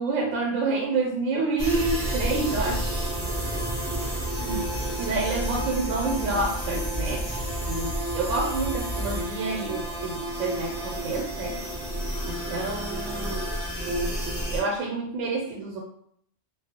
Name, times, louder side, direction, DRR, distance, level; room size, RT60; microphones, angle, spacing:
voice 1, 0.0-2.9 4.4-4.7 5.0-11.6 12.3-13.5 13.8-14.2 14.5-15.8, right 3 dB, 85° right, 0 dB, 0.9 m, -28 dB
sound 1, 1.6-14.6, right 1 dB, 25° right, 0.4 m, -30 dB
2.2 x 2.0 x 2.7 m, 0.66 s
omnidirectional pair, 1.3 m